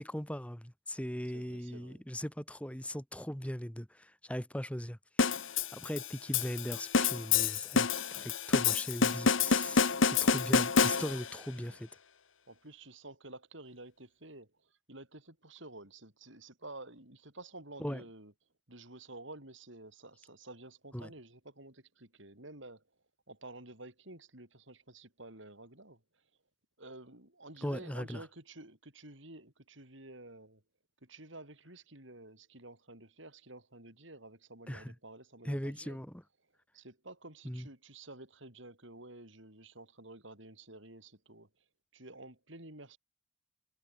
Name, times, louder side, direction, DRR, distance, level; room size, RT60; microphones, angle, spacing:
voice 1, 0.0-11.9 17.8-18.0 20.9-21.1 27.6-28.2 34.7-34.9 35.4-36.2 37.4-37.7, equal, 5° left, 1.4 m, -39 dB
voice 2, 1.3-2.0 11.5-11.8 12.5-18.3 18.7-22.8 23.3-26.0 26.8-30.6 31.0-36.0 36.7-41.5 41.9-43.0, right 2 dB, 70° right, 6.7 m, -51 dB
sound 1, 5.2-11.4, left 5 dB, 75° left, 1.3 m, -28 dB
head